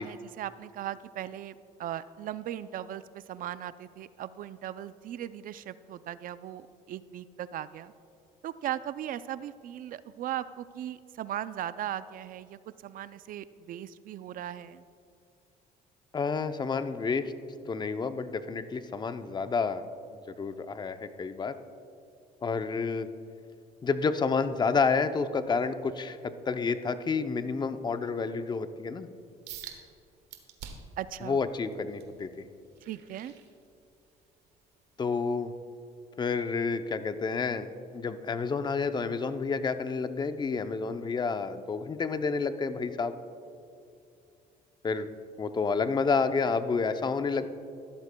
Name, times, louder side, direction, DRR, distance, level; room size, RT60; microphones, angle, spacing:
voice 1, 0.0-1.5 1.8-7.9 8.4-14.8 31.0-31.4 32.9-33.3, right 11 dB, 55° right, 15 dB, 0.4 m, -38 dB
voice 2, 16.1-17.3 17.7-19.9 20.3-21.6 22.4-23.1 23.8-29.1 31.2-32.4 35.0-35.5 36.2-43.2 44.8-45.1 45.4-47.5, left 4 dB, 25° left, 10 dB, 0.6 m, -29 dB
sound 1, 29.5-29.8 30.3-31.0 31.5-34.1 34.5-34.8 35.3-35.4, right 8 dB, 85° right, 1.4 m, -46 dB
15.5 x 12.5 x 2.2 m, 2.6 s
cardioid pair, 110°, 17 cm